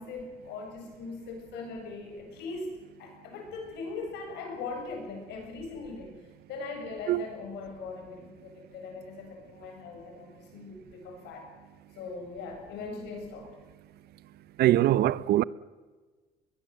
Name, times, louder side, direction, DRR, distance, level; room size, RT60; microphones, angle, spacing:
voice 1, 0.0-6.1 6.5-11.5 12.0-13.5, left 3 dB, 85° left, 7.6 m, -40 dB
voice 2, 14.6-15.4, right 14 dB, 70° right, 0.7 m, -22 dB
21.5 x 21.0 x 7.8 m
cardioid pair, 110°, 17 cm